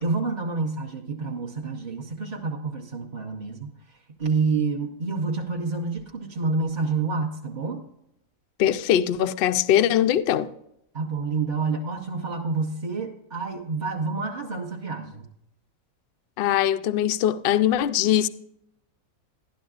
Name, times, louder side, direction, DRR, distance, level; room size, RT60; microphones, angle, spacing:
voice 1, 0.0-3.7 4.2-7.8 10.9-15.2, right 4 dB, 35° right, 0.9 m, -28 dB
voice 2, 8.6-10.5 16.4-18.3, left 11 dB, 70° left, 0.5 m, -21 dB
12.0 x 11.5 x 2.4 m
omnidirectional pair, 1.6 m